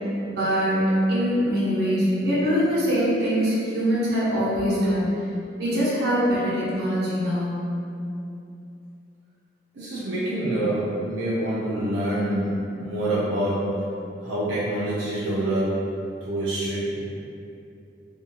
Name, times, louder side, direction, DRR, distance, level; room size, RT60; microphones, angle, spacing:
voice 1, 0.3-5.2 5.6-7.5, equal, 60° right, -9 dB, 0.8 m, -23 dB
voice 2, 9.7-13.7 14.2-15.9 16.2-17.1, right 1 dB, 90° right, -9 dB, 0.5 m, -26 dB
2.6 x 2.2 x 2.7 m, 2.6 s
head